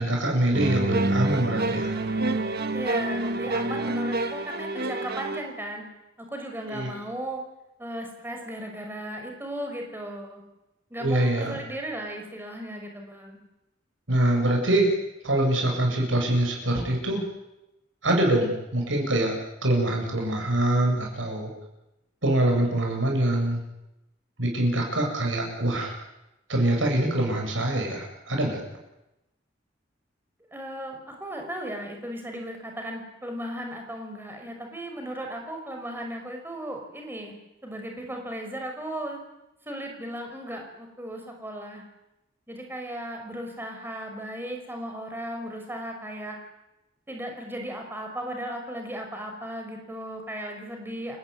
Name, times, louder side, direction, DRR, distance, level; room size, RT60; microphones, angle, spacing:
voice 1, 0.0-1.9 6.7-6.9 11.0-11.6 14.1-14.9 15.2-17.2 18.0-21.5 22.2-23.6 24.4-25.9 26.5-28.6, right 1 dB, 85° right, 1 dB, 8.0 m, -24 dB
sound 1, 0.5-5.5, right 2 dB, 55° right, 1.7 m, -28 dB
voice 2, 2.7-5.9 6.2-7.4 7.8-10.4 10.9-13.4 30.5-37.3 37.6-39.2 39.7-41.9 42.5-46.4 47.1-51.2, right 1 dB, 10° right, 3 dB, 5.8 m, -36 dB
30.0 x 16.0 x 9.8 m, 0.93 s
head